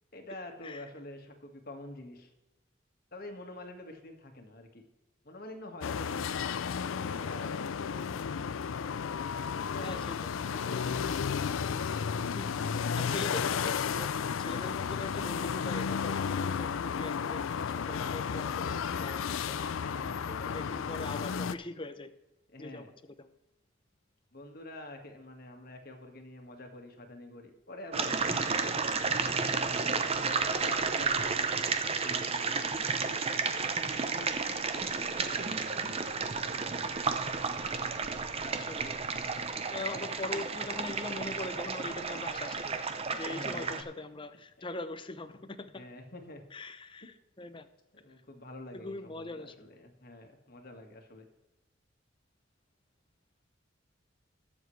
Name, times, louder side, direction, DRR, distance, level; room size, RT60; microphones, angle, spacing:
voice 1, 0.1-2.3 3.1-4.8 5.2-6.3 6.9-7.6 9.4-10.1 10.5-11.1 12.6-13.4 19.8-20.9 22.5-22.9 24.3-28.5 29.4-33.3 34.0-34.3 34.7-37.1 43.2-43.8 45.6-46.4 47.9-51.3, left 1 dB, 50° left, 4 dB, 1.8 m, -47 dB
sound 1, 5.8-21.5, left 6 dB, 80° left, 0.4 m, -33 dB
voice 2, 9.8-10.3 12.3-14.1 14.4-19.7 20.5-22.1 22.6-22.8 23.2-23.3 38.5-39.0 39.7-42.8 43.2-45.8 46.5-47.7 48.7-49.5, left 2 dB, 25° left, 11 dB, 0.7 m, -42 dB
sound 2, 27.9-43.8, right 4 dB, 30° right, 0.7 m, -32 dB
20.5 x 7.2 x 3.3 m, 0.99 s
head